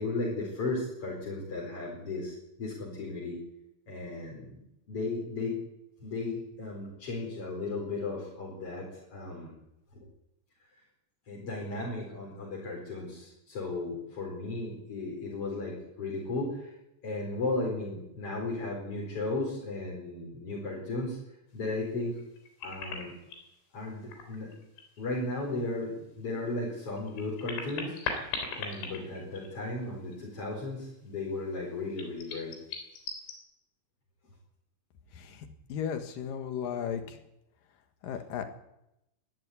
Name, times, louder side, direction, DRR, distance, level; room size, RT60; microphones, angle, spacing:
voice 1, 0.0-3.4 3.9-5.5 6.0-9.5 9.9-10.1 11.3-16.8 17.0-21.2 21.5-22.2 22.6-23.1 23.7-24.5 25.0-27.9 28.5-32.5 36.7-36.9, left 2 dB, 30° left, -2 dB, 5.0 m, -35 dB
sound 1, 22.2-23.5 24.0-25.0 25.3-25.4 26.9-29.8 30.1-30.2 32.0-33.4, left 5 dB, 90° left, 6.3 m, -38 dB
voice 2, 35.2-37.2 38.0-38.5, left 8 dB, 60° left, 7 dB, 2.7 m, -35 dB
21.5 x 13.0 x 9.7 m, 0.86 s
omnidirectional pair, 5.5 m